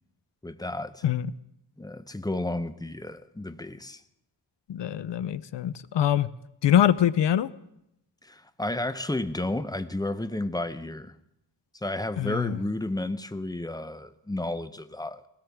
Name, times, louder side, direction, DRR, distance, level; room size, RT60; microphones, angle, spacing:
voice 1, 0.4-1.0 1.8-4.0 8.2-11.1 11.7-15.2, left 1 dB, 10° left, 0.6 m, -32 dB
voice 2, 4.7-6.3 6.6-7.5 12.2-12.6, left 10 dB, 80° left, 0.7 m, -24 dB
19.5 x 17.0 x 3.5 m
wide cardioid pair, 125°, 42 cm